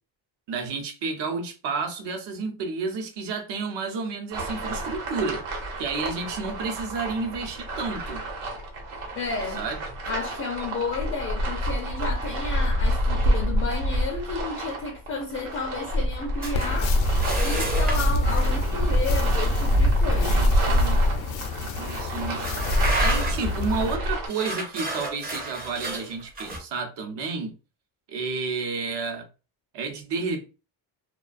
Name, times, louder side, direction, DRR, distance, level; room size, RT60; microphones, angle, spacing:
voice 1, 0.5-5.4 5.8-8.2 9.6-9.8 20.1-21.1 21.8-22.5 23.0-27.5 28.1-29.3 29.7-30.5, right 4 dB, 60° right, 0.8 m, -31 dB
sound 1, 4.3-24.3, equal, 90° right, 1.0 m, -26 dB
voice 2, 9.1-9.6 10.1-16.9 17.4-20.4, left 4 dB, 30° left, 0.4 m, -32 dB
sound 2, 16.4-16.7 17.2-18.2 20.7-20.9 21.4-21.5 22.3-23.5 24.3-26.6, right 2 dB, 20° right, 0.5 m, -31 dB
sound 3, 16.5-24.0, left 5 dB, 80° left, 0.6 m, -32 dB
2.3 x 2.2 x 2.4 m
cardioid pair, 150°, 47 cm